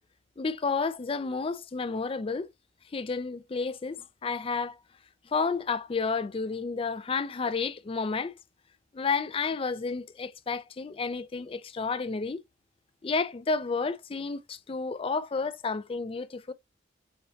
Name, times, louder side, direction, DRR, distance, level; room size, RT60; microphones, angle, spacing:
voice 1, 0.4-2.5 2.9-4.8 5.3-8.4 8.9-12.4 13.0-16.5, left 4 dB, 30° left, 0.4 m, -31 dB
6.4 x 2.9 x 2.8 m
head